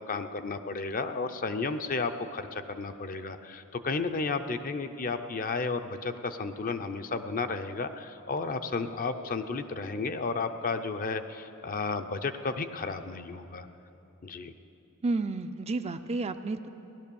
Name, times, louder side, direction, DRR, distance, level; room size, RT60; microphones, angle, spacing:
voice 1, 0.0-13.7 14.2-14.5, left 4 dB, 40° left, 8 dB, 0.6 m, -33 dB
voice 2, 15.0-16.7, right 3 dB, 30° right, 9 dB, 0.4 m, -31 dB
17.0 x 11.5 x 7.0 m, 2.9 s
head